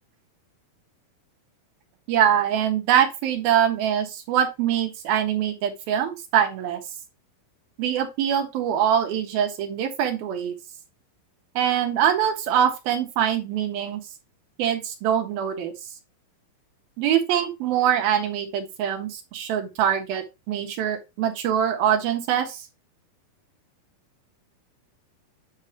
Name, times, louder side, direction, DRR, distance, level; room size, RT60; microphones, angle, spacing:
voice 1, 2.1-6.8 7.8-10.5 11.6-14.0 14.6-15.7 17.0-22.6, right 9 dB, 90° right, 4 dB, 3.3 m, -23 dB
9.0 x 5.1 x 2.9 m, 0.24 s
omnidirectional pair, 4.2 m